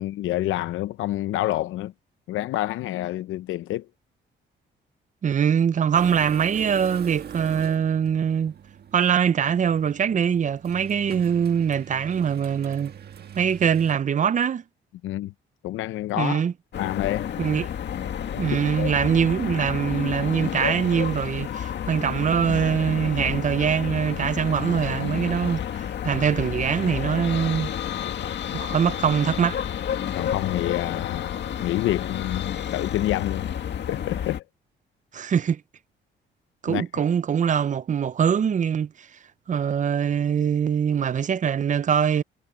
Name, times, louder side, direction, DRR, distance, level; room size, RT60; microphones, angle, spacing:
voice 1, 0.0-1.9 2.3-3.9 15.0-15.3 15.6-16.4 16.8-17.3 18.5-18.9 30.1-33.6 33.9-34.4 36.7-37.0, left 15 dB, 85° left, 0.6 m, -28 dB
voice 2, 5.2-8.5 8.9-12.9 13.3-14.6 16.2-16.5 17.4-17.7 18.3-27.7 28.5-29.6 35.1-35.6 36.6-39.1 39.5-42.2, right 8 dB, 40° right, 0.6 m, -23 dB
sound 1, 5.9-13.9, right 8 dB, 55° right, 1.5 m, -42 dB
sound 2, 16.7-34.4, left 9 dB, 65° left, 2.1 m, -30 dB
cardioid pair, 90°, 20 cm